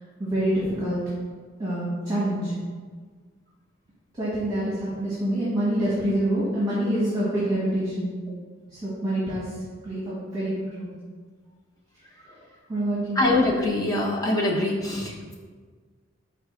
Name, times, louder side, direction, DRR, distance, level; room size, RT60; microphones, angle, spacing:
voice 1, 0.2-1.0 1.6-2.5 4.2-8.1 8.7-9.5 9.8-10.9 12.7-13.2 14.9-15.0, right 1 dB, 15° right, -11 dB, 1.1 m, -26 dB
voice 2, 13.2-15.4, left 2 dB, 15° left, -3 dB, 0.6 m, -24 dB
4.5 x 2.4 x 4.8 m, 1.5 s
head